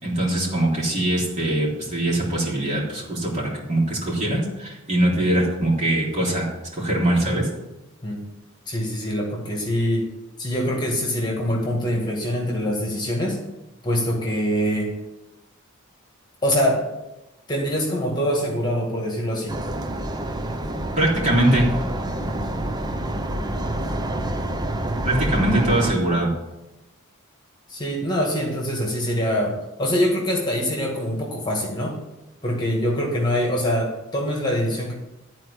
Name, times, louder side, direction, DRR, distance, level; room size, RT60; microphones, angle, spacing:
voice 1, 0.0-7.5 21.0-21.7 25.0-26.3, right 1 dB, 35° right, -4 dB, 3.4 m, -22 dB
voice 2, 8.7-10.1 10.4-13.4 13.8-14.9 16.4-16.9 17.5-19.6 27.7-32.0 32.4-34.9, equal, 20° left, -1 dB, 2.0 m, -24 dB
sound 1, 19.5-25.9, right 1 dB, 20° right, 0.6 m, -27 dB
12.5 x 4.6 x 8.3 m, 0.99 s
head